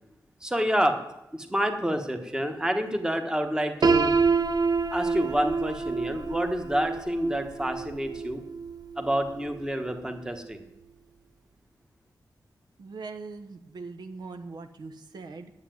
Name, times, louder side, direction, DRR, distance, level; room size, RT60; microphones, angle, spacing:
voice 1, 0.4-1.0 1.3-4.1 4.9-8.4 9.0-10.6, equal, 10° right, 6 dB, 1.3 m, -28 dB
Piano, 3.8-9.7, right 4 dB, 65° right, 0.8 m, -27 dB
voice 2, 12.8-15.5, right 4 dB, 90° right, 7 dB, 1.1 m, -41 dB
9.8 x 8.0 x 9.3 m, 0.89 s
wide cardioid pair, 135°, 7 cm